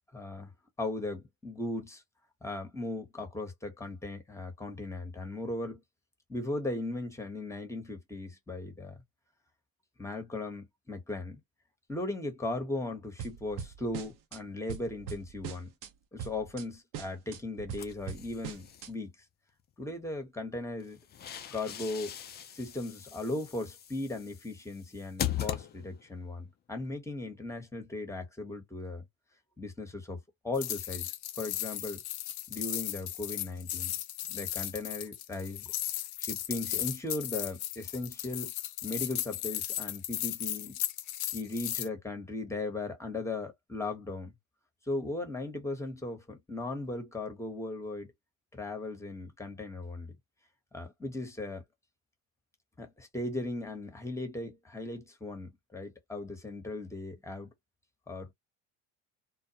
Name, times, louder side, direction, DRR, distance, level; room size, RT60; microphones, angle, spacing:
voice 1, 0.1-0.5 0.8-2.0 2.4-5.8 6.3-9.0 10.0-11.4 11.9-15.7 16.1-19.1 19.8-21.0 21.5-22.1 22.5-29.1 29.6-32.0 32.5-34.0 34.2-35.7 36.2-38.5 38.8-40.8 41.3-44.3 44.9-48.1 48.5-50.1 50.7-51.6 52.8-57.5 58.1-58.3, left 2 dB, 5° left, 0.9 m, -37 dB
sound 1, 13.2-14.4 14.7-15.9 16.2-16.6 16.9-18.9, right 8 dB, 50° right, 0.7 m, -42 dB
sound 2, 17.8-18.9 20.8-26.2, left 11 dB, 25° left, 0.4 m, -40 dB
sound 3, 30.5-41.9, left 13 dB, 90° left, 0.6 m, -36 dB
2.2 x 2.1 x 2.7 m
supercardioid pair, 80°, 41 cm